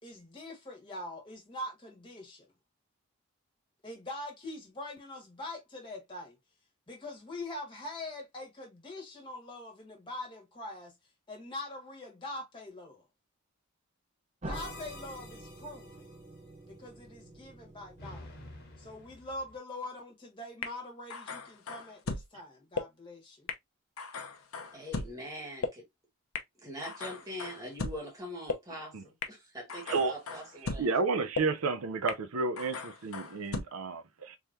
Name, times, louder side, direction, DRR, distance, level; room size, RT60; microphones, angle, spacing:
voice 1, 0.0-2.5 3.8-6.4 6.9-10.9 11.3-13.0 14.4-16.1 16.7-18.4 18.8-23.5, left 1 dB, 20° left, 1.5 m, -43 dB
sound 1, 14.4-19.2, right 1 dB, 30° right, 0.6 m, -47 dB
sound 2, 14.5-16.2 18.0-19.6, left 2 dB, 45° left, 1.3 m, -49 dB
sound 3, 20.6-20.7 21.1-22.2 22.8-22.9 23.5-23.6 24.0-25.1 25.6-25.7 26.3-26.4 26.8-28.0 28.5-28.6 29.2-29.3 29.7-30.8 31.3-31.4 32.1-32.2 32.6-33.6, left 4 dB, 80° left, 0.7 m, -36 dB
voice 2, 24.7-25.8 26.6-30.9, equal, 15° right, 1.6 m, -43 dB
voice 3, 30.8-34.4, right 4 dB, 80° right, 0.6 m, -31 dB
3.7 x 3.1 x 2.5 m
head